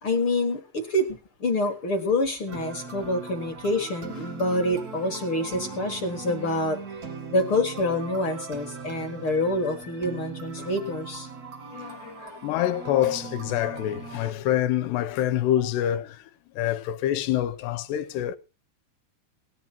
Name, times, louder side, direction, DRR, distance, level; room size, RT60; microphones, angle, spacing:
voice 1, 0.0-6.8 7.3-11.3, left 1 dB, 55° left, 1.5 m, -27 dB
sound 1, 2.5-14.3, right 4 dB, 60° right, 0.9 m, -39 dB
voice 2, 11.7-18.4, left 12 dB, 80° left, 2.9 m, -26 dB
18.5 x 11.5 x 4.3 m
omnidirectional pair, 4.9 m